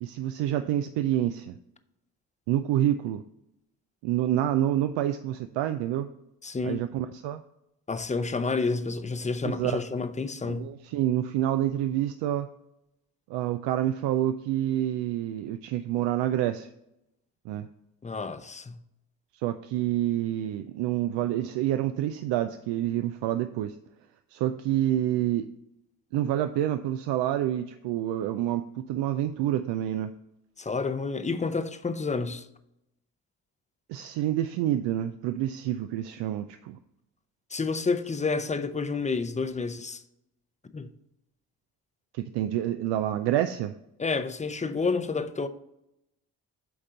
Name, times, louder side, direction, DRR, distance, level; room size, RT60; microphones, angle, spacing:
voice 1, 0.0-1.6 2.5-3.2 4.0-6.1 6.6-7.4 9.4-9.8 10.4-12.5 13.3-16.7 17.5-17.7 19.4-23.7 24.3-25.5 26.1-30.1 33.9-36.8 42.1-43.7, right 12 dB, 75° right, 0.5 m, -28 dB
voice 2, 6.4-6.8 7.9-10.7 18.0-18.8 30.6-32.4 37.5-40.0 40.7-40.9 44.0-45.5, left 4 dB, 15° left, 0.6 m, -29 dB
8.7 x 3.7 x 3.9 m
hypercardioid pair, 50°, 43 cm